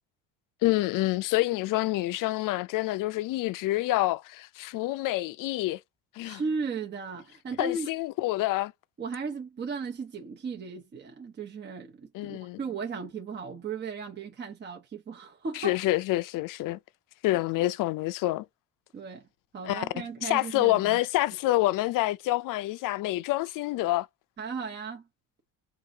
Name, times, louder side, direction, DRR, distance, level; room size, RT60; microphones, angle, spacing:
voice 1, 0.6-5.8 6.2-6.4 7.6-8.7 12.1-12.6 15.6-16.8 17.2-18.4 19.7-19.9 20.2-24.1, left 17 dB, 60° left, 0.6 m, -27 dB
voice 2, 6.2-7.9 9.0-15.8 17.6-17.7 18.9-19.2 19.5-21.0 24.4-25.1, right 4 dB, 30° right, 0.9 m, -36 dB
3.7 x 2.6 x 4.0 m
supercardioid pair, 100°, 37 cm